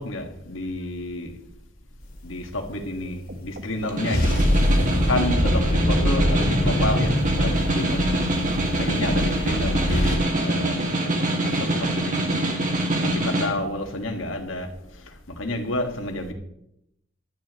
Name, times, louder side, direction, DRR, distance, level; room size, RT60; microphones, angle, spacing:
voice 1, 0.0-1.3 2.2-4.4 5.1-8.1 8.4-10.8 11.4-12.4 13.0-16.3, left 1 dB, 80° left, 3 dB, 1.9 m, -30 dB
sound 1, 2.1-2.7 4.1-10.2, equal, 50° left, 3.4 m, -23 dB
sound 2, 3.3-12.0, right 1 dB, 60° right, 1.3 m, -40 dB
Snare drum, 3.8-13.5, right 1 dB, 40° right, 1.9 m, -25 dB
16.5 x 11.5 x 3.1 m, 0.78 s
head